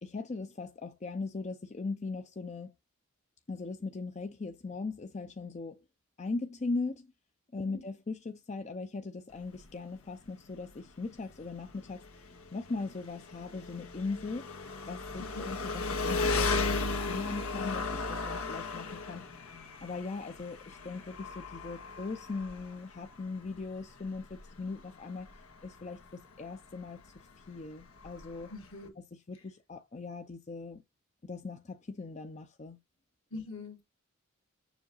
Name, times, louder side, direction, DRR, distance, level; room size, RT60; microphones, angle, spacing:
voice 1, 0.0-2.7 3.5-5.8 6.2-7.1 7.5-14.5 14.9-19.2 19.8-25.3 25.6-27.1 27.5-28.5 29.1-30.8 31.2-32.8, left 3 dB, 35° left, 0.5 m, -39 dB
voice 2, 7.5-7.8 15.2-15.6 28.5-28.9 33.3-33.8, left 3 dB, 65° left, 2.1 m, -43 dB
Engine, 9.3-28.9, left 3 dB, 90° left, 1.5 m, -37 dB
7.2 x 2.7 x 5.5 m
head